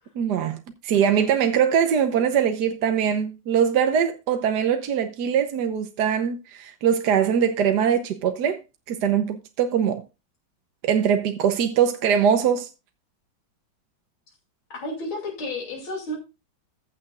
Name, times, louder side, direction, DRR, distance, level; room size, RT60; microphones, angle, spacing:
voice 1, 0.2-0.6 0.8-8.6 8.9-10.0 10.8-12.7, right 8 dB, 65° right, 1.3 m, -22 dB
voice 2, 14.7-16.2, left 1 dB, 85° left, 3.6 m, -31 dB
14.5 x 8.5 x 2.4 m
omnidirectional pair, 2.1 m